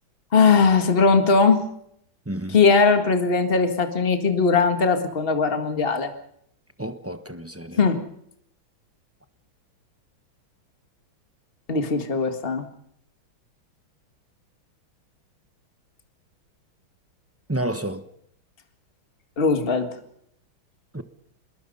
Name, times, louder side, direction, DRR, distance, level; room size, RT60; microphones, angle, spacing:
voice 1, 0.3-1.6 2.5-6.1 7.8-8.1 11.7-12.6 19.4-19.9, left 4 dB, 30° left, 2.0 m, -19 dB
voice 2, 2.3-2.6 6.8-7.8 17.5-18.0 20.9-21.0, right 1 dB, 15° right, 0.5 m, -30 dB
25.5 x 21.0 x 5.5 m
omnidirectional pair, 2.2 m